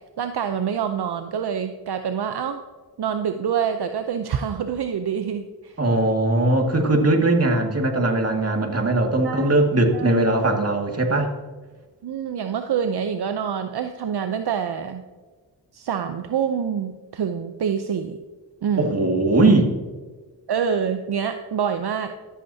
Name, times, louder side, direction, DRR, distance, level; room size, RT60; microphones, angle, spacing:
voice 1, 0.2-2.6 3.0-5.8 9.2-9.5 9.9-10.2 12.0-15.0 15.7-18.2 18.6-19.0 20.5-22.1, right 7 dB, 65° right, 7 dB, 0.7 m, -26 dB
voice 2, 5.8-11.3 18.8-19.7, right 2 dB, 35° right, 2 dB, 2.1 m, -20 dB
13.5 x 8.4 x 2.8 m, 1.3 s
cardioid pair, 45°, 42 cm